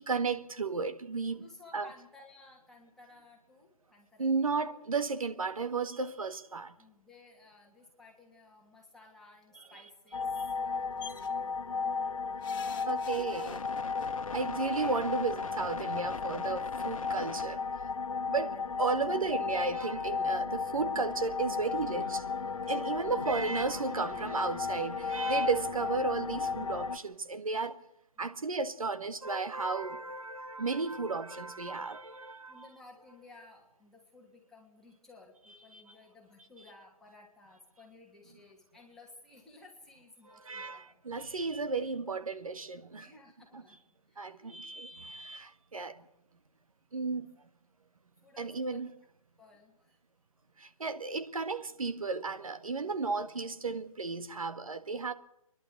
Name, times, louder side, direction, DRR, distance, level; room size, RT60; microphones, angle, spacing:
voice 1, 0.0-1.5 1.7-1.9 4.2-6.7 10.3-10.5 12.9-13.6 14.0-17.9 18.3-22.2 22.7-27.8 28.2-32.7 35.7-35.8 40.4-43.1 44.2-46.0 46.9-47.3 48.4-48.9 50.6-55.1, right 4 dB, 70° right, 1.8 m, -34 dB
voice 2, 1.3-4.5 6.8-11.6 28.2-28.4 32.5-41.0 42.9-43.8 44.1-44.7 48.2-48.9 49.4-50.0, left 3 dB, ahead, 2.9 m, -57 dB
sound 1, 10.1-27.0, left 5 dB, 65° left, 1.3 m, -34 dB
sound 2, 11.0-11.3 12.4-14.1 15.3-15.4 15.7-15.8, left 7 dB, 35° left, 2.2 m, -47 dB
29.5 x 11.5 x 8.0 m
figure-of-eight pair, 145°, 18 cm